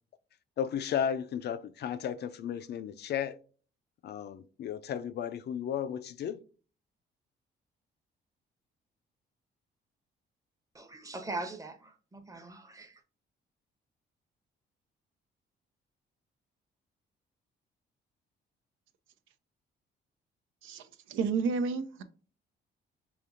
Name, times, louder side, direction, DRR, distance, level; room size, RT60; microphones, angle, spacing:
voice 1, 0.6-3.4 4.0-6.4, left 8 dB, 60° left, 0.4 m, -34 dB
voice 2, 10.7-13.0, right 2 dB, 15° right, 0.8 m, -41 dB
voice 3, 20.6-22.0, right 5 dB, 80° right, 0.6 m, -31 dB
5.1 x 2.7 x 2.5 m
cardioid pair, 90°, 20 cm